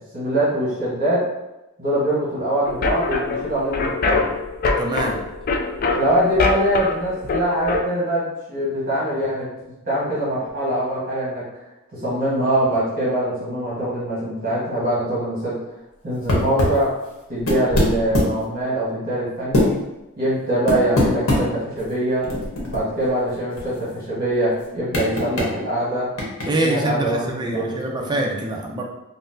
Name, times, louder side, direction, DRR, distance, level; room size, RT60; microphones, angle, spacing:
voice 1, 0.1-1.2 1.8-4.3 5.9-9.5 9.8-11.4 11.9-15.5 16.0-16.9 17.3-19.8 20.2-22.3 22.7-26.1 26.6-28.1, right 1 dB, 45° right, -9 dB, 1.2 m, -23 dB
sound 1, 2.7-7.8, left 3 dB, 45° left, 0.3 m, -24 dB
voice 2, 4.8-5.2 26.5-28.8, right 2 dB, 20° right, 0 dB, 0.4 m, -24 dB
sound 2, 16.3-16.8 17.4-18.4 19.5-19.7 20.7-21.4 21.8-21.9 22.2-23.0 23.3-23.4 23.6-23.8 24.9-25.5 26.2-26.5, left 1 dB, 75° left, 0.9 m, -20 dB
4.1 x 2.0 x 2.6 m, 0.96 s
head